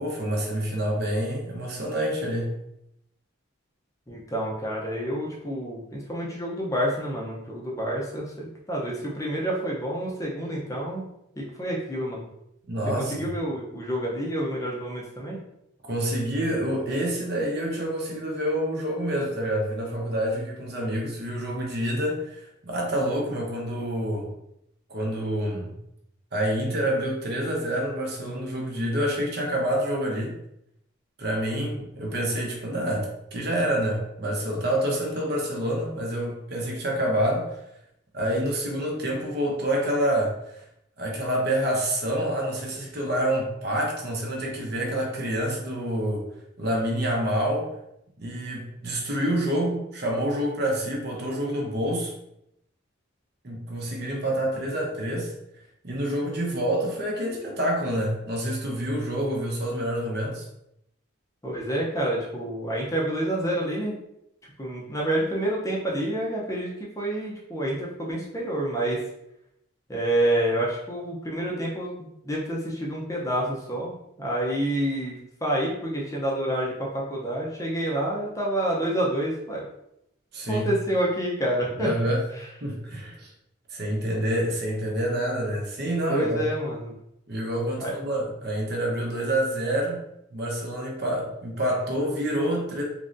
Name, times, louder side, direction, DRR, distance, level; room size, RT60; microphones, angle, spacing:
voice 1, 0.0-2.5 12.7-13.3 15.8-24.3 24.9-25.8 26.3-30.3 31.2-37.6 38.1-40.6 41.0-46.3 46.6-47.7 48.2-52.1 53.4-55.3 55.8-60.5 80.3-80.7 81.8-82.2 82.6-83.3 83.7-86.4 87.3-90.0 90.3-92.8, right 1 dB, 50° right, -1 dB, 0.8 m, -27 dB
voice 2, 4.1-11.1 11.4-12.3 13.0-15.4 61.4-64.0 64.6-69.0 69.9-73.9 74.2-75.2 75.4-79.7 80.5-81.9 86.1-86.9 87.8-87.9, right 1 dB, 15° left, -3 dB, 0.6 m, -28 dB
3.7 x 3.1 x 2.5 m, 0.79 s
head